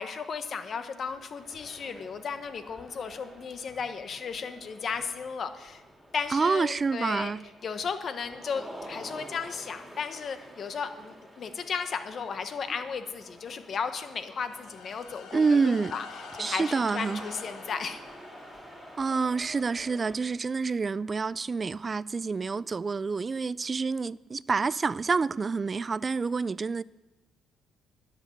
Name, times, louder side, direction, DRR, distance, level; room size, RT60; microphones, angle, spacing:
voice 1, 0.0-5.8 6.1-7.3 7.6-16.1 16.3-18.0, left 6 dB, 55° left, 1.2 m, -35 dB
sound 1, 1.0-20.2, equal, 5° right, 3.0 m, -48 dB
voice 2, 6.3-7.4 15.3-15.9 16.4-17.2 19.0-26.8, right 4 dB, 35° right, 0.3 m, -28 dB
sound 2, 14.4-19.2, left 8 dB, 85° left, 1.0 m, -48 dB
10.5 x 8.0 x 7.9 m
cardioid pair, 90°, 0 cm